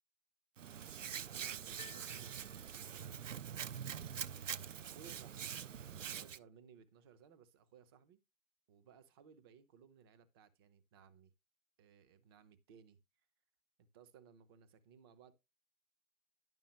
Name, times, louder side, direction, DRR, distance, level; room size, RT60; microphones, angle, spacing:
voice 1, 0.6-0.9 1.2-3.4 4.3-5.5 5.9-8.2 8.7-11.3 11.8-13.0 13.8-15.3, right 7 dB, 20° right, 0.6 m, -62 dB
Hands, 0.6-6.4, right 8 dB, 70° right, 0.5 m, -44 dB
sound 1, 1.8-3.3, left 9 dB, 85° left, 0.8 m, -59 dB
11.0 x 5.4 x 3.0 m
figure-of-eight pair, 125°, 39 cm